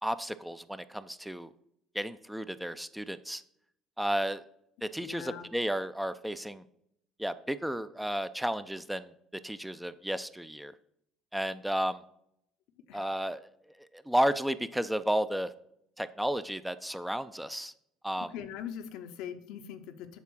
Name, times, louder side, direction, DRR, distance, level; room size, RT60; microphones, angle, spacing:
voice 1, 0.0-1.5 1.9-3.4 4.0-4.4 4.8-6.6 7.2-9.1 9.4-10.7 11.3-12.0 12.9-13.4 14.1-15.5 16.0-17.7 18.0-18.3, equal, 5° right, 13 dB, 0.4 m, -32 dB
voice 2, 5.0-5.5 12.9-13.0 18.2-20.2, left 9 dB, 65° left, 9 dB, 0.6 m, -41 dB
7.2 x 3.7 x 6.1 m, 0.74 s
hypercardioid pair, 60°, 0 cm